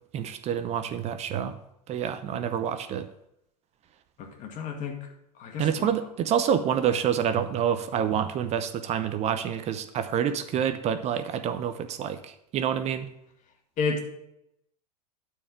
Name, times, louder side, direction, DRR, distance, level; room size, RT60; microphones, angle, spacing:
voice 1, 0.1-1.5 1.9-3.0 5.6-12.2 12.5-13.1, right 8 dB, 30° right, 11 dB, 0.7 m, -27 dB
voice 2, 4.2-5.0 5.4-5.9 13.8-14.0, left 5 dB, 40° left, 3 dB, 2.0 m, -31 dB
12.0 x 4.7 x 6.1 m, 0.80 s
hypercardioid pair, 95°, 21 cm